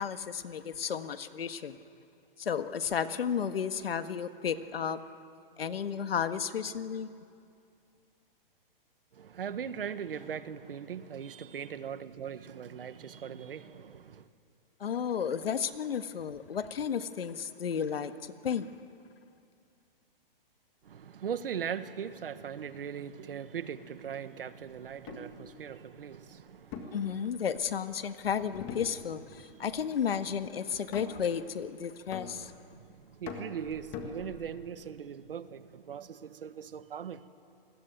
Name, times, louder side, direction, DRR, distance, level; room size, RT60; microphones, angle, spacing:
voice 1, 0.0-1.8 2.4-5.0 5.6-7.1 14.8-18.7 26.9-32.5, left 7 dB, 80° left, 1.6 m, -33 dB
voice 2, 9.1-14.3 20.8-27.3 29.3-29.7 32.3-32.4 32.7-37.2, right 8 dB, 70° right, 1.5 m, -40 dB
sound 1, 25.1-25.4 26.7-27.8 28.5-29.4 29.7-30.1 30.9-31.4 32.1-32.8 33.3-34.7, left 5 dB, 20° left, 1.8 m, -43 dB
28.0 x 21.0 x 9.3 m
hypercardioid pair, 175°, 29 cm